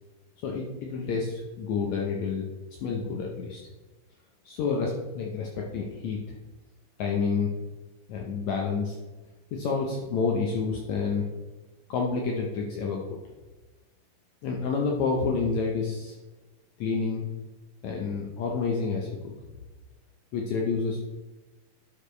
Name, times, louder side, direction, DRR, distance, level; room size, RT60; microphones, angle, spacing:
voice 1, 0.4-2.4 2.8-3.6 4.5-6.2 7.0-7.5 8.1-9.0 9.5-11.2 11.9-13.2 14.4-16.1 16.8-17.2 17.8-19.3 20.3-21.0, left 5 dB, 70° left, -1 dB, 1.9 m, -29 dB
10.0 x 6.5 x 3.2 m, 1.2 s
omnidirectional pair, 3.8 m